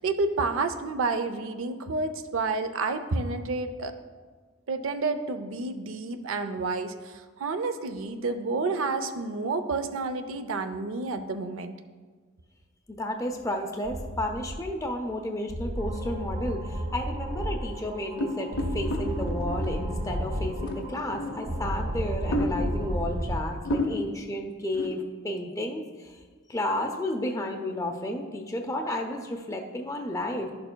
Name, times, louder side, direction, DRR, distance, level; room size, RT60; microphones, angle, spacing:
voice 1, 0.0-3.9 4.7-11.7, right 3 dB, 75° right, 9 dB, 0.5 m, -30 dB
voice 2, 12.9-26.2 26.5-30.5, left 1 dB, 15° left, 3 dB, 0.4 m, -32 dB
sound 1, 13.8-14.5 15.5-17.6 18.5-20.5 21.5-23.4, right 1 dB, 90° right, 0.9 m, -32 dB
sound 2, 15.8-23.0, right 1 dB, 40° right, 1.8 m, -44 dB
sound 3, 18.2-19.9 20.6-21.7 22.3-22.9 23.4-23.5 23.6-24.3 24.7-25.0, left 1 dB, 85° left, 0.6 m, -32 dB
11.0 x 6.6 x 2.2 m, 1.5 s
head